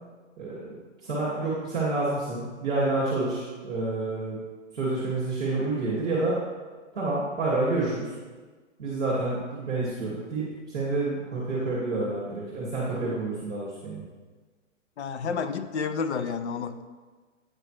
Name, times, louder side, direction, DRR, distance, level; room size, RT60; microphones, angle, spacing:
voice 1, 0.4-0.8 1.0-4.4 4.7-6.4 6.9-8.1 8.8-14.0, right 2 dB, 5° right, -16 dB, 0.4 m, -28 dB
voice 2, 15.0-16.8, left 5 dB, 60° left, 10 dB, 0.5 m, -30 dB
8.8 x 4.8 x 3.2 m, 1.4 s
hypercardioid pair, 170°, 37 cm